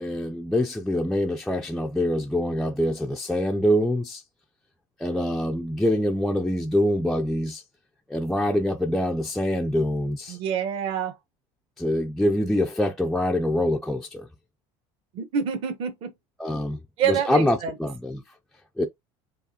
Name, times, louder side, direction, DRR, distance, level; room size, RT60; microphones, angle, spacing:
voice 1, 0.0-4.2 5.0-7.6 8.1-10.4 11.8-14.3 16.4-16.8 17.1-18.2 18.8-18.9, left 1 dB, 5° left, 0.3 m, -25 dB
voice 2, 10.3-11.1 15.1-16.1 17.0-17.7, right 7 dB, 50° right, 1.0 m, -27 dB
4.8 x 2.8 x 2.7 m
cardioid pair, 150°, 11 cm